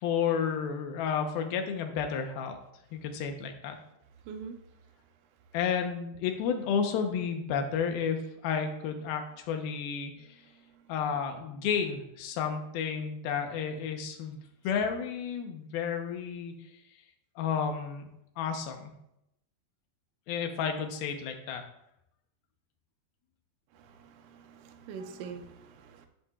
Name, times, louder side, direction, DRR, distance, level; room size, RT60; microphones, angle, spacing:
voice 1, 0.0-2.6 2.9-3.8 5.5-10.4 10.9-14.4 14.6-16.5 17.4-18.1 18.4-18.9 20.3-21.6, left 7 dB, 75° left, 5 dB, 2.8 m, -31 dB
voice 2, 4.2-4.6 10.3-10.9 23.7-26.1, right 6 dB, 70° right, 6 dB, 2.1 m, -45 dB
11.0 x 10.5 x 2.4 m, 0.80 s
omnidirectional pair, 4.5 m